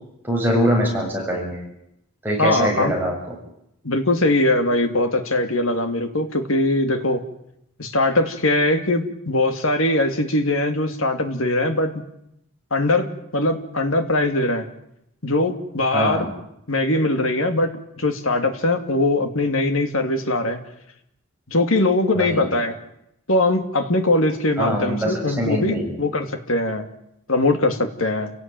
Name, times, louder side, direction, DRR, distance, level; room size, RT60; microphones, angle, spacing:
voice 1, 0.2-1.6 2.2-3.4 15.9-16.3 22.2-22.4 24.6-25.8, equal, 10° right, -2 dB, 7.4 m, -23 dB
voice 2, 2.4-2.9 3.8-7.2 7.8-12.0 12.7-14.7 15.2-16.3 16.7-17.7 18.0-20.6 21.5-22.8 23.3-26.9 27.3-28.3, left 2 dB, 70° left, 7 dB, 2.7 m, -21 dB
29.5 x 18.0 x 9.3 m, 0.82 s
head